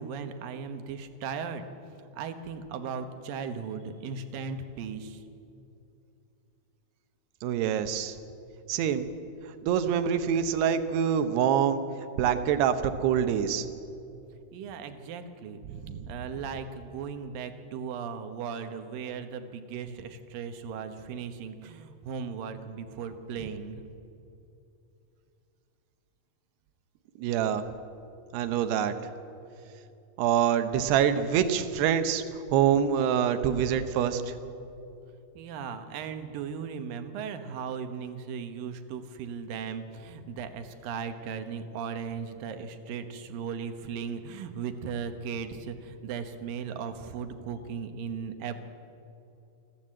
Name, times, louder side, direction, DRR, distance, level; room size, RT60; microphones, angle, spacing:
voice 1, 0.0-1.7 2.2-5.2 14.5-15.6 16.1-23.8 35.4-48.5, right 6 dB, 70° right, 8 dB, 2.7 m, -37 dB
voice 2, 7.4-8.1 8.7-9.1 9.6-11.8 12.2-13.6 15.8-16.0 27.2-27.6 28.3-28.9 30.2-32.2 32.5-34.2, right 9 dB, 90° right, 9 dB, 3.1 m, -25 dB
29.0 x 11.5 x 7.7 m, 2.7 s
omnidirectional pair, 4.6 m